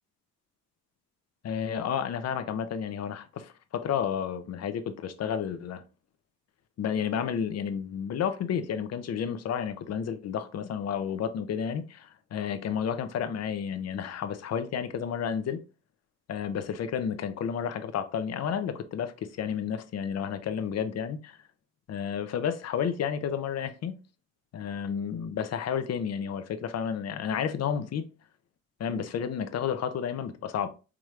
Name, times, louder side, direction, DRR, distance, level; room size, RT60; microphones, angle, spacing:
voice 1, 1.4-5.8 6.8-15.6 16.3-21.4 21.9-23.9 24.5-28.1 28.8-30.7, left 8 dB, 55° left, 0.6 m, -31 dB
4.9 x 3.0 x 2.4 m
cardioid pair, 90°, 30 cm